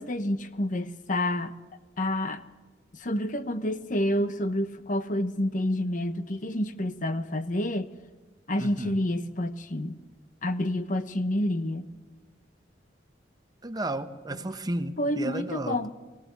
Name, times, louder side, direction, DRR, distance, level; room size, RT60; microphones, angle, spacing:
voice 1, 0.0-1.5 2.0-2.4 2.9-7.9 8.5-10.0 10.4-11.9 14.3-14.4 15.0-15.9, left 1 dB, 45° left, 11 dB, 1.0 m, -28 dB
voice 2, 8.6-9.0 13.6-15.8, right 1 dB, 20° right, 10 dB, 0.9 m, -33 dB
19.5 x 17.0 x 8.3 m, 1.2 s
head